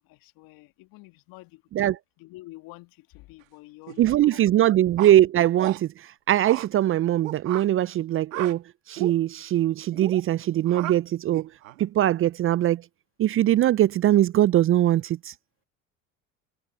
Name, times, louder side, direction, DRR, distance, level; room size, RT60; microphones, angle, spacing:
voice 1, 0.0-1.6 2.2-4.5, left 20 dB, 60° left, 1.8 m, -48 dB
sound 1, 3.9-4.1 5.0-5.8 6.4-6.7 7.2-7.7 8.3-8.5 9.0-9.1 9.9-10.2 10.7-11.0 11.3-11.8, right 14 dB, 80° right, 1.8 m, -34 dB
voice 2, 4.0-8.6 8.9-11.5 11.8-12.8 13.2-15.3, right 13 dB, 35° right, 0.5 m, -21 dB
hypercardioid pair, 70°, 39 cm